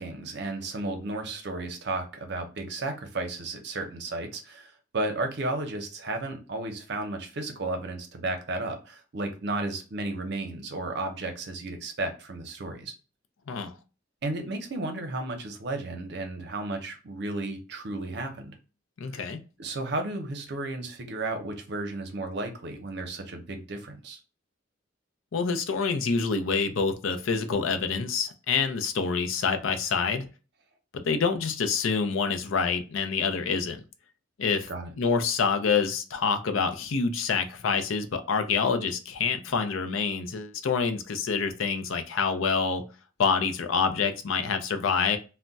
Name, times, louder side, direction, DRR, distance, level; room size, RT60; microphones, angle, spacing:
voice 1, 0.0-12.9 14.2-18.5 19.1-19.3 19.6-24.2 34.7-34.9, right 2 dB, 55° right, 0.6 m, -33 dB
voice 2, 19.0-19.4 25.3-30.3 31.0-33.8 34.4-34.7 35.0-42.8 43.2-45.2, left 5 dB, 80° left, 0.5 m, -27 dB
2.2 x 2.1 x 3.8 m
head